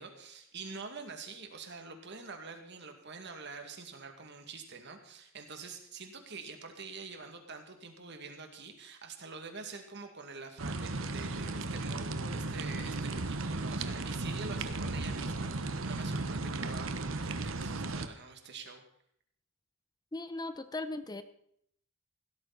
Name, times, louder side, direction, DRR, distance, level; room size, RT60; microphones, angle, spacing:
voice 1, 0.0-18.8, right 4 dB, 60° right, 5 dB, 2.2 m, -46 dB
sound 1, 10.6-18.1, right 2 dB, 75° right, 1.1 m, -35 dB
voice 2, 20.1-21.2, left 2 dB, 20° left, 11 dB, 0.7 m, -38 dB
16.5 x 13.0 x 4.1 m, 0.68 s
head